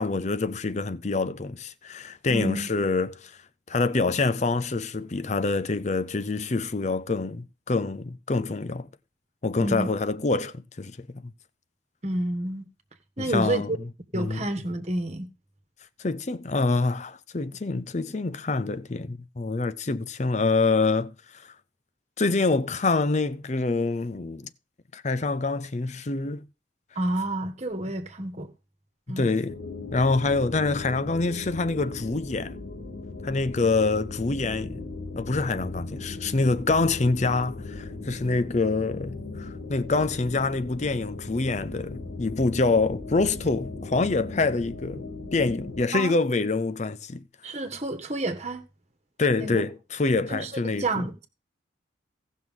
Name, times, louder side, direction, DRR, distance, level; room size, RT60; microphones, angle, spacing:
voice 1, 0.0-3.4 3.7-8.9 9.4-11.3 13.2-13.7 14.1-14.5 16.0-21.5 22.2-24.5 24.9-26.5 29.1-29.6 29.9-32.6 33.2-34.9 35.2-45.1 45.3-47.2 49.2-51.0, left 3 dB, 35° left, 0.5 m, -26 dB
voice 2, 2.3-2.7 9.6-9.9 12.0-12.7 13.2-13.8 14.1-15.3 26.9-28.5 29.1-29.3 45.9-46.1 47.4-48.6 49.4-49.6 50.3-51.3, right 1 dB, 35° right, 1.4 m, -29 dB
sound 1, 29.5-45.8, left 3 dB, 85° left, 3.2 m, -38 dB
17.0 x 6.2 x 3.7 m
head